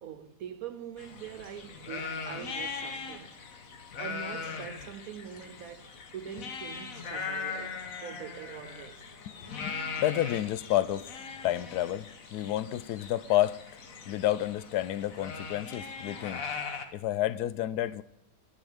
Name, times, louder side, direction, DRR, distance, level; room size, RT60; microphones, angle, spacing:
voice 1, 0.0-3.4 4.0-9.0, right 8 dB, 70° right, 1.1 m, -43 dB
sound 1, 1.0-16.9, left 5 dB, 65° left, 1.5 m, -40 dB
voice 2, 9.3-11.1 11.4-16.5 16.9-18.0, left 13 dB, 85° left, 1.1 m, -30 dB
11.5 x 6.3 x 6.6 m
omnidirectional pair, 1.6 m